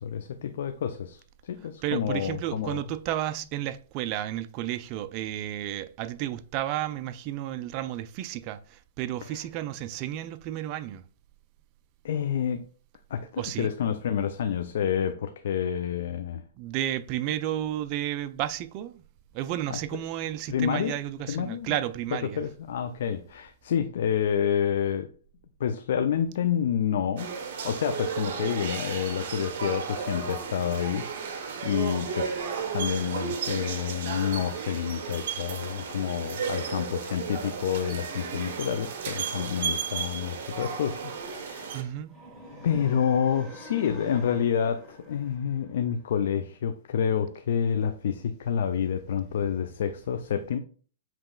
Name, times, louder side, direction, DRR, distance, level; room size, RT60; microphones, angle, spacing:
voice 1, 0.0-2.8 9.3-9.4 12.0-12.6 13.1-16.4 19.7-19.8 20.5-21.0 21.3-21.8 22.4-25.1 25.6-27.3 27.6-32.3 32.7-41.8 42.6-50.6, left 8 dB, 65° left, 0.4 m, -28 dB
voice 2, 1.8-11.0 13.4-13.7 16.6-19.0 19.3-22.4 41.7-42.1, right 12 dB, 35° right, 0.4 m, -32 dB
sound 1, 27.2-41.8, right 6 dB, 55° right, 0.9 m, -34 dB
sound 2, 42.1-46.2, left 1 dB, ahead, 1.2 m, -46 dB
7.4 x 3.0 x 2.3 m
hypercardioid pair, 140°, 0 cm